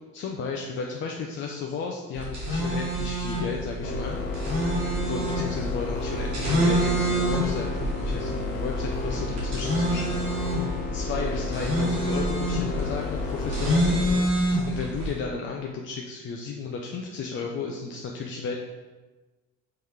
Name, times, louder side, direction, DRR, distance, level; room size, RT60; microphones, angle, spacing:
voice 1, 0.1-4.5 5.1-10.6 10.9-14.0 14.7-18.5, left 5 dB, 30° left, 0 dB, 0.4 m, -34 dB
sound 1, 2.1-15.1, right 1 dB, 75° right, 1.5 m, -27 dB
sound 2, 3.8-14.2, left 3 dB, 60° left, 0.9 m, -32 dB
3.8 x 3.1 x 3.3 m, 1.2 s
figure-of-eight pair, 50°, 48 cm